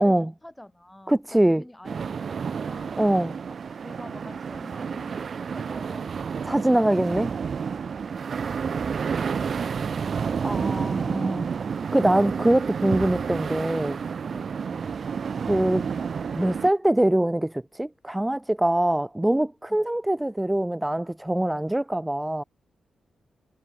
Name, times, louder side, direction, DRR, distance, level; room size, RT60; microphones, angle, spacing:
voice 1, 0.0-3.0 3.5-6.2 6.7-7.2 12.6-12.8 14.3-14.9 19.7-19.9, left 1 dB, 10° left, 5.0 m, -48 dB
voice 2, 1.1-1.6 3.0-3.3 6.4-7.3 10.4-11.5 11.9-14.0 15.5-15.9 16.3-22.4, right 1 dB, 10° right, 1.1 m, -23 dB
sound 1, 1.8-16.7, right 6 dB, 50° right, 0.5 m, -30 dB
wide cardioid pair, 115°, 0 cm